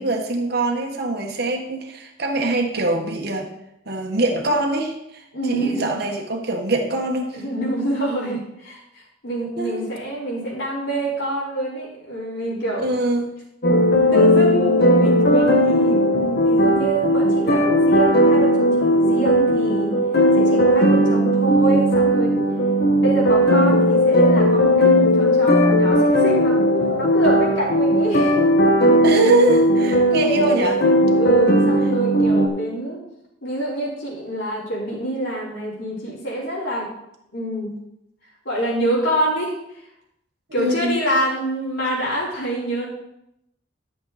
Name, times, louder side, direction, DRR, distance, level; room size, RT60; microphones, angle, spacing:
voice 1, 0.0-3.5 3.9-7.4 9.6-9.8 12.8-13.3 29.0-30.8 40.6-41.0, right 2 dB, 55° right, 2 dB, 1.4 m, -23 dB
voice 2, 5.3-6.0 7.3-12.9 14.1-19.9 20.4-22.4 23.0-28.4 29.8-30.7 31.2-33.0 33.4-36.9 37.3-37.7 38.4-39.8 40.5-42.9, right 1 dB, 70° left, -6 dB, 4.0 m, -26 dB
sound 1, 13.6-32.5, equal, 55° left, 1.3 m, -17 dB
12.0 x 7.0 x 4.2 m, 0.82 s
head